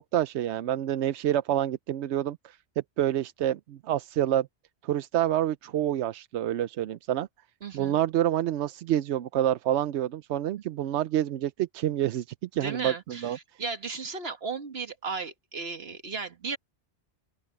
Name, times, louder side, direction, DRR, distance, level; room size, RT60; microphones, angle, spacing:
voice 1, 0.0-2.6 3.0-4.5 4.8-7.3 7.7-13.4, right 12 dB, 90° right, 0.9 m, -28 dB
voice 2, 7.6-8.0 12.6-16.6, right 4 dB, 65° right, 1.8 m, -35 dB
open air
omnidirectional pair, 1.1 m